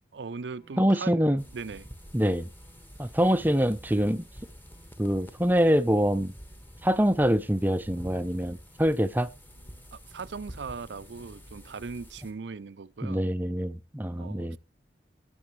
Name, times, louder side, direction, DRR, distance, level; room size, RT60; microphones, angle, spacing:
voice 1, 0.1-1.2 1.5-1.9 9.9-13.2 14.2-14.6, right 4 dB, 85° right, 0.5 m, -39 dB
sound 1, 0.6-11.9, left 1 dB, 35° left, 4.0 m, -63 dB
voice 2, 0.8-1.4 2.1-2.5 3.0-4.3 5.0-6.3 6.8-9.3 13.0-14.6, equal, 10° right, 0.5 m, -25 dB
sound 2, 1.4-12.3, equal, 10° left, 1.4 m, -48 dB
18.0 x 6.9 x 3.2 m
head